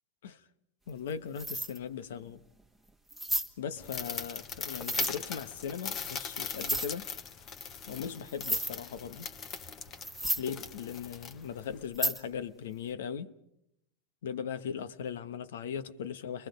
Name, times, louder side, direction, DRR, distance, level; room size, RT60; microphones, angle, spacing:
voice 1, 0.9-2.4 3.6-7.1 7.9-9.3 10.4-13.3 14.2-16.5, left 7 dB, 90° left, 1.1 m, -38 dB
sound 1, 0.9-1.1 1.4-1.8 2.3-2.4 3.1-3.5 4.6-5.1 6.5-6.9 7.9-8.0 8.3-8.7 9.6-9.7 10.0-10.5 11.9-12.2, right 1 dB, 5° left, 1.4 m, -32 dB
sound 2, 3.8-11.8, left 6 dB, 30° left, 1.0 m, -40 dB
30.0 x 23.0 x 5.3 m
supercardioid pair, 150°, 0 cm